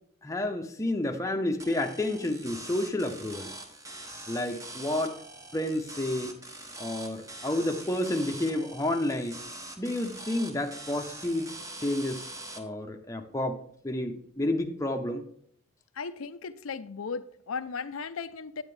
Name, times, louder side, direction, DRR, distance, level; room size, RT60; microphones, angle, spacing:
voice 1, 0.2-3.5 4.3-5.2 5.5-6.3 6.8-9.4 9.8-11.5 11.8-12.3 12.6-15.2, left 1 dB, 15° left, 4 dB, 0.7 m, -30 dB
sound 1, 1.6-12.6, right 2 dB, 15° right, 0.9 m, -43 dB
voice 2, 16.0-18.6, left 5 dB, 80° left, 10 dB, 0.5 m, -36 dB
9.4 x 8.9 x 3.3 m, 0.64 s
head